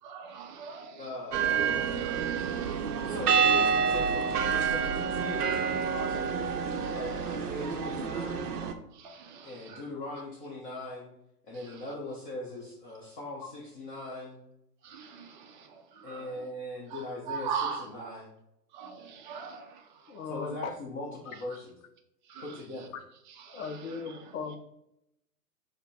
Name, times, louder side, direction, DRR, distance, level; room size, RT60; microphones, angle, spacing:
voice 1, 0.0-1.1 1.9-3.1 6.8-6.9 8.9-9.9 11.6-11.8 14.8-16.4 16.9-18.1 18.7-20.2 20.5-20.6 22.3-22.6 23.3-24.6, right 6 dB, 30° right, 0.5 m, -41 dB
voice 2, 1.0-1.5 3.0-6.3 6.9-8.5 9.4-11.1 11.4-14.4 16.0-17.5 17.8-18.3 20.3-21.7 22.4-22.9, left 2 dB, 30° left, 0.9 m, -40 dB
sound 1, 1.3-8.7, right 6 dB, 65° right, 0.8 m, -28 dB
voice 3, 20.1-20.7 23.5-24.6, left 5 dB, 55° left, 0.7 m, -37 dB
5.2 x 2.1 x 4.1 m
figure-of-eight pair, 120°, 49 cm